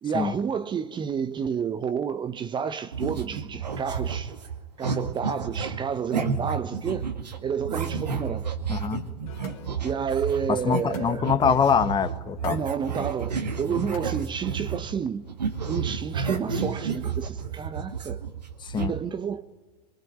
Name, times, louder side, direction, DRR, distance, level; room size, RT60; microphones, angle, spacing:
voice 1, 0.0-4.3 4.8-7.1 7.4-8.5 9.8-11.4 12.4-15.3 15.7-18.2 18.8-19.4, right 7 dB, 20° right, 1.0 m, -30 dB
sound 1, 2.9-15.0 15.3-18.9, right 6 dB, 80° right, 2.1 m, -31 dB
voice 2, 8.7-9.0 10.5-12.6 18.6-18.9, left 7 dB, 20° left, 1.4 m, -24 dB
sound 2, 9.1-15.3, left 8 dB, 60° left, 2.8 m, -47 dB
24.0 x 24.0 x 9.5 m
hypercardioid pair, 95°, 21 cm